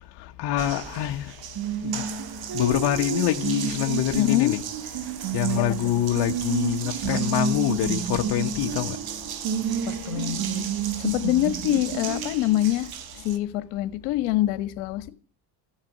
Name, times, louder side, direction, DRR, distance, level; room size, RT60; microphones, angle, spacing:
voice 1, 0.2-1.3 1.8-2.0 2.5-4.6 5.3-9.0, left 14 dB, 55° left, 1.3 m, -25 dB
Water tap faucet, 0.6-13.4, right 8 dB, 45° right, 1.8 m, -30 dB
voice 2, 4.2-4.5 5.6-5.7 9.9-10.6 11.0-12.9 13.1-15.1, left 15 dB, 75° left, 1.7 m, -25 dB
14.5 x 7.4 x 7.4 m
supercardioid pair, 100°, 49 cm